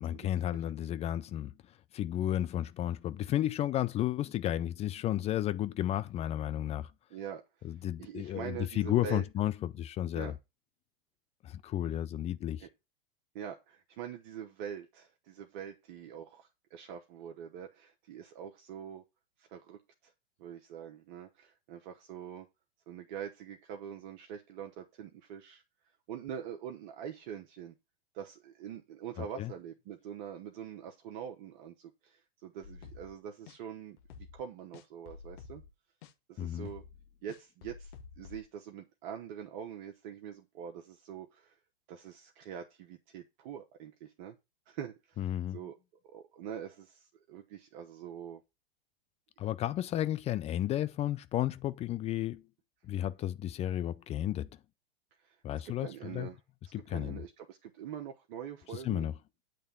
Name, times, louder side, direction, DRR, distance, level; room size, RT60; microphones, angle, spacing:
voice 1, 0.0-1.5 1.9-6.9 7.6-10.3 11.4-12.7 29.2-29.5 36.4-36.7 45.2-45.6 49.4-52.4 52.8-54.5 55.4-56.3 56.7-57.2 58.7-59.1, left 12 dB, 20° left, 0.4 m, -33 dB
voice 2, 7.1-9.2 10.1-10.3 12.6-12.7 13.3-19.0 19.4-20.1 20.4-22.5 22.9-25.6 26.1-27.7 28.1-35.6 36.3-36.8 37.2-41.6 41.9-44.3 44.7-45.8 46.0-48.4 55.2-55.4 55.8-56.4 56.7-59.1, right 9 dB, 50° right, 1.1 m, -44 dB
sound 1, 32.6-33.2 33.5-33.6 34.0-34.4 34.7-35.7 36.0-36.1 36.5-38.4, left 5 dB, 55° left, 1.3 m, -50 dB
9.1 x 3.4 x 6.8 m
hypercardioid pair, 105°, 30 cm